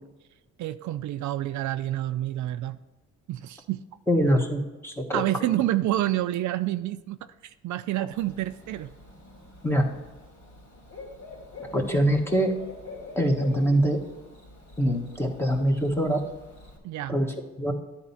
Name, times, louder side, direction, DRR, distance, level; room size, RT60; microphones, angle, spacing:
voice 1, 0.6-2.8 3.3-3.8 5.1-7.2 7.4-8.9 16.8-17.2, right 14 dB, 70° right, 11 dB, 0.5 m, -28 dB
voice 2, 4.1-5.2 9.6-9.9 11.7-12.5 13.1-14.0 14.8-16.2 17.1-17.3 17.6-17.7, equal, 10° left, 2 dB, 1.5 m, -23 dB
Bird / Cricket, 8.1-16.8, left 3 dB, 65° left, 3.0 m, -46 dB
10.0 x 4.3 x 5.7 m, 1.1 s
cardioid pair, 90°, 30 cm